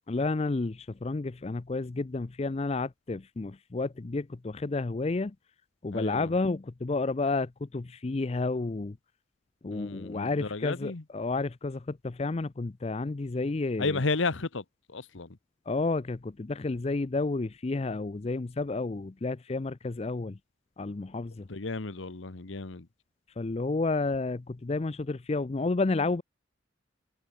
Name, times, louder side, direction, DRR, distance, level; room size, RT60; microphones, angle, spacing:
voice 1, 0.1-5.3 5.8-9.0 9.6-14.0 15.7-20.4 20.8-21.5 23.4-26.2, left 3 dB, 30° left, 0.5 m, -31 dB
voice 2, 5.9-6.3 9.7-11.0 13.8-15.4 21.4-22.9, left 3 dB, 80° left, 1.1 m, -33 dB
head